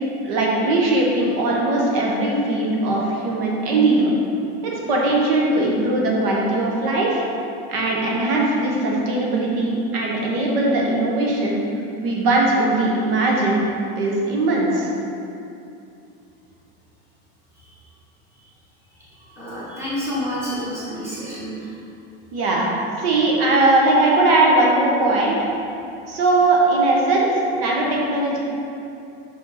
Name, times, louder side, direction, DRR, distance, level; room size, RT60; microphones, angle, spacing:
voice 1, 0.2-4.1 4.7-7.2 7.7-11.6 12.0-13.6 14.0-14.9 22.3-22.7 23.0-25.4 26.1-28.4, right 2 dB, 65° right, -3 dB, 1.2 m, -19 dB
voice 2, 19.2-21.7, equal, 10° right, -9 dB, 1.4 m, -29 dB
5.8 x 5.0 x 4.2 m, 2.7 s
supercardioid pair, 170°, 31 cm